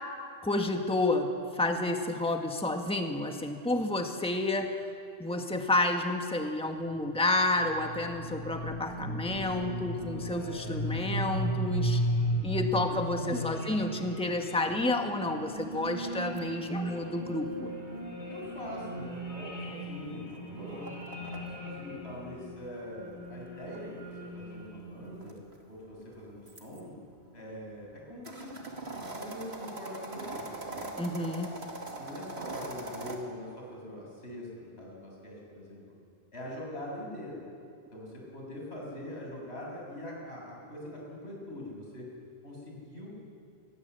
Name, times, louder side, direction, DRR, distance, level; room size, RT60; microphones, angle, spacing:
voice 1, 0.4-4.8 5.2-12.0 12.4-17.7 31.0-31.5, left 2 dB, 5° left, 4 dB, 1.6 m, -30 dB
sound 1, 7.0-25.2, equal, 55° left, 5.3 m, -36 dB
sound 2, 15.5-21.4 22.6-26.8 27.4-33.2, right 2 dB, 80° right, 2.8 m, -43 dB
voice 2, 18.3-27.0 27.3-28.5 29.1-30.9 32.0-35.8 36.3-37.4 37.9-42.1 42.4-43.2, left 1 dB, 90° left, -2 dB, 7.4 m, -43 dB
27.5 x 21.0 x 8.1 m, 2.4 s
omnidirectional pair, 1.1 m